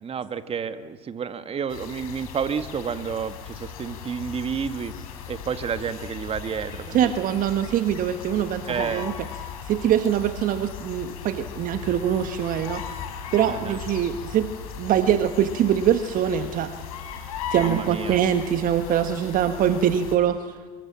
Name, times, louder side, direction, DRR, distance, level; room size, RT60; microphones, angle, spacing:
voice 1, 0.0-4.9 5.3-7.1 8.7-9.1 13.5-13.8 17.6-18.2, right 6 dB, 30° right, 11 dB, 1.8 m, -30 dB
sound 1, 1.7-20.2, left 7 dB, 75° left, 3.7 m, -37 dB
voice 2, 6.9-9.1 9.7-13.0 13.3-14.5 14.8-16.7 17.5-20.6, right 10 dB, 45° right, 9 dB, 1.3 m, -23 dB
26.0 x 23.5 x 7.5 m, 1.4 s
hypercardioid pair, 70°, 19 cm